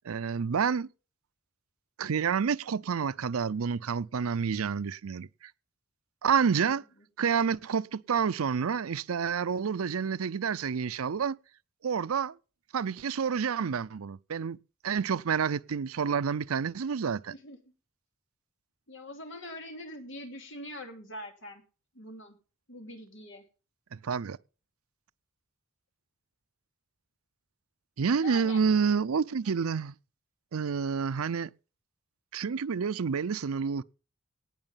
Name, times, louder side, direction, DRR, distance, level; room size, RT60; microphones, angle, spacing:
voice 1, 0.0-0.9 2.0-5.3 6.2-6.8 7.2-11.4 11.8-12.3 12.7-14.6 14.8-17.3 23.9-24.4 28.0-29.9 30.5-31.5 32.3-33.8, right 6 dB, 85° right, 0.5 m, -29 dB
voice 2, 18.9-21.6 21.9-22.4 22.7-23.4 28.2-28.6, left 1 dB, 60° left, 2.8 m, -43 dB
18.0 x 6.2 x 5.7 m
head